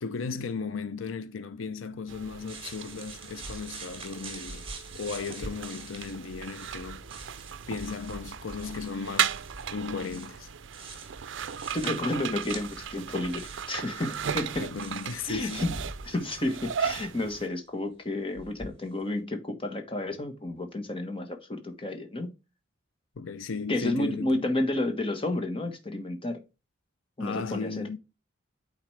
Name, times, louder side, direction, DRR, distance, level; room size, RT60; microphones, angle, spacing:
voice 1, 0.0-4.7 4.9-7.0 7.7-9.4 9.7-10.5 14.6-15.8 23.2-24.5 27.2-28.0, left 5 dB, 80° left, 0.6 m, -36 dB
sound 1, 2.1-17.5, right 8 dB, 65° right, 0.5 m, -36 dB
sound 2, 2.5-17.3 18.3-19.1, right 3 dB, 30° right, 2.2 m, -45 dB
voice 2, 11.7-14.7 15.3-15.8 16.0-22.3 23.7-26.4 27.2-28.0, left 1 dB, 25° left, 1.3 m, -31 dB
9.0 x 3.9 x 3.2 m
head